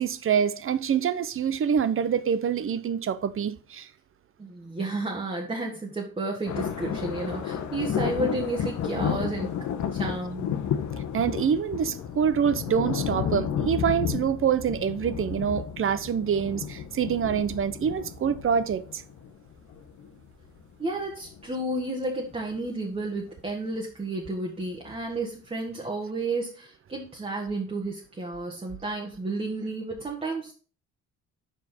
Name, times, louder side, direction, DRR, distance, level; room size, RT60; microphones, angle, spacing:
voice 1, 0.0-3.9 11.1-19.0, right 7 dB, 45° right, 0.6 m, -26 dB
voice 2, 4.4-9.5 9.9-10.5 20.8-30.5, right 2 dB, 20° right, 1.4 m, -32 dB
sound 1, 6.5-20.6 21.1-21.4 22.3-22.6 23.3-23.4 24.9-25.0, left 8 dB, 70° left, 1.0 m, -32 dB
6.1 x 4.8 x 4.4 m
cardioid pair, 90°, 30 cm